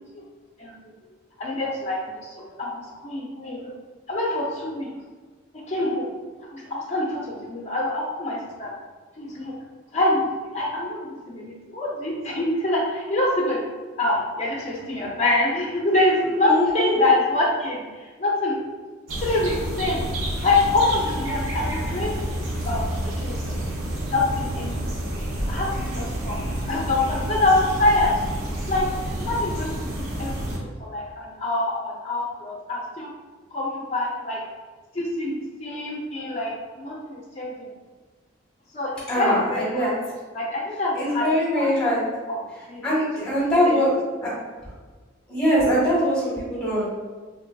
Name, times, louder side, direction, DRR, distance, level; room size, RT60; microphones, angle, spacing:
voice 1, 1.4-3.7 4.1-4.9 5.7-6.1 6.5-8.7 9.2-9.5 9.9-10.3 10.5-13.6 14.0-18.6 19.2-20.0 20.4-22.2 22.6-23.8 24.1-24.8 25.1-25.7 25.9-26.4 26.7-28.1 28.7-28.9 29.2-33.1 33.5-34.4 34.9-37.7 38.7-38.9 39.2-39.9 40.3-41.7 42.3-42.4 42.7-42.9 43.2-43.3 43.6-43.8, left 2 dB, 30° left, -3 dB, 0.4 m, -25 dB
voice 2, 16.4-17.0 39.1-39.9 40.9-42.0 42.8-43.9 44.2-44.3 45.3-46.8, equal, 5° left, -10 dB, 1.0 m, -22 dB
sound 1, 19.1-30.6, right 1 dB, 85° right, 0.7 m, -29 dB
3.1 x 2.4 x 2.2 m, 1.4 s
head